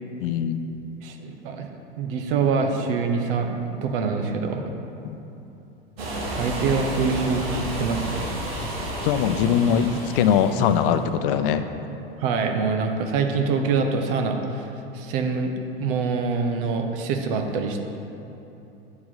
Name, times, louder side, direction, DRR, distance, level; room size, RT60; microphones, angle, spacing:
voice 1, 0.2-0.6 5.0-5.2 9.0-11.6, left 8 dB, 60° left, 10 dB, 0.6 m, -21 dB
voice 2, 1.0-4.7 6.3-8.3 12.2-14.6 14.9-15.5 15.8-17.8, right 4 dB, 60° right, 5 dB, 1.0 m, -25 dB
sound 1, 6.0-11.0, right 1 dB, 75° right, 1.9 m, -31 dB
8.5 x 4.8 x 5.6 m, 2.9 s
hypercardioid pair, 95°, 30 cm